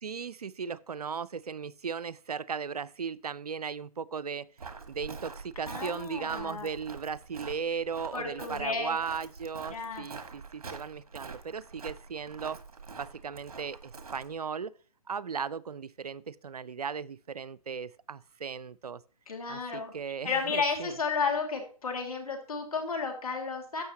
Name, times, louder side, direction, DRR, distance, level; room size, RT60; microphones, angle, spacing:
voice 1, 0.0-4.5 4.9-12.6 12.9-14.7 15.1-19.0 19.5-21.0, right 6 dB, 85° right, 0.5 m, -37 dB
Walk footsteps, 4.6-14.3, right 4 dB, 70° right, 1.5 m, -45 dB
voice 2, 5.7-6.7 8.1-9.0 9.7-10.1 19.3-19.9 20.2-23.8, left 5 dB, 70° left, 2.3 m, -32 dB
11.5 x 8.1 x 2.8 m
figure-of-eight pair, 140°, 19 cm